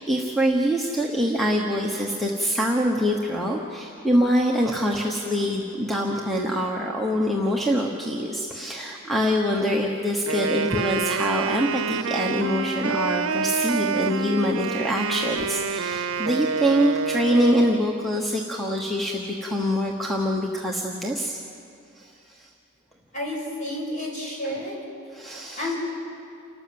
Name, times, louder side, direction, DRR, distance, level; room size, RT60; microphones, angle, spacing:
voice 1, 0.0-21.4 21.9-22.5 25.1-25.7, equal, ahead, -1 dB, 1.1 m, -24 dB
Wind instrument woodwind instrument, 10.2-17.9, right 5 dB, 75° right, 0.7 m, -27 dB
voice 2, 23.1-24.8 25.6-25.8, left 1 dB, 35° left, -3 dB, 5.9 m, -30 dB
29.0 x 13.0 x 7.8 m, 2.6 s
head